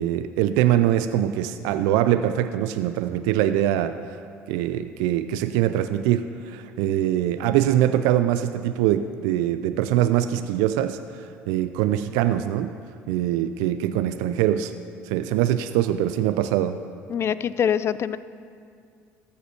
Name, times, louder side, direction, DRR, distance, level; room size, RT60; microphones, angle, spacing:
voice 1, 0.0-3.9 4.5-12.7 13.1-14.7 15.0-16.8, right 12 dB, 80° right, 10 dB, 0.4 m, -23 dB
voice 2, 17.1-18.2, left 8 dB, 45° left, 15 dB, 0.4 m, -24 dB
14.0 x 5.3 x 6.7 m, 2.3 s
supercardioid pair, 80°, 6 cm